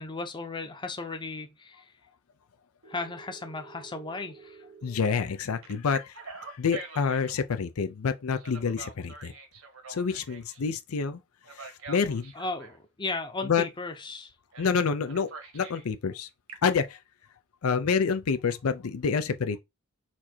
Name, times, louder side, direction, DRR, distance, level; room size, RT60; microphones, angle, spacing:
voice 1, 0.0-1.9 2.9-4.6 12.3-14.3, left 3 dB, 20° left, 0.7 m, -35 dB
Telephone, 2.8-5.1 5.6-7.4 8.3-10.6 11.4-12.8 14.5-14.8 15.1-15.9 16.3-16.8, right 4 dB, 65° right, 1.2 m, -45 dB
voice 2, 4.8-9.3 9.9-11.2 11.5-12.3 13.4-13.6 14.6-16.3 16.6-17.0 17.6-19.6, left 5 dB, 85° left, 0.5 m, -28 dB
4.4 x 2.8 x 4.3 m
head